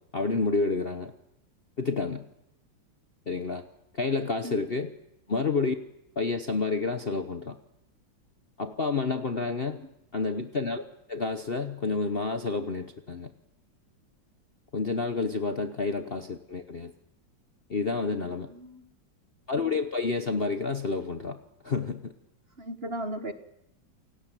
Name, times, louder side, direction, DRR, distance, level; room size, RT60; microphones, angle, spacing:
voice 1, 0.1-1.1 1.8-2.2 3.3-3.6 3.9-4.9 5.3-5.8 6.2-7.6 8.6-9.8 10.1-13.3 14.7-16.9 17.7-18.5 19.5-21.4 21.6-22.1, left 4 dB, 40° left, 8 dB, 1.0 m, -29 dB
voice 2, 18.1-18.9 22.6-23.3, right 1 dB, 35° right, 9 dB, 1.6 m, -37 dB
29.0 x 17.0 x 9.1 m, 0.85 s
omnidirectional pair, 2.1 m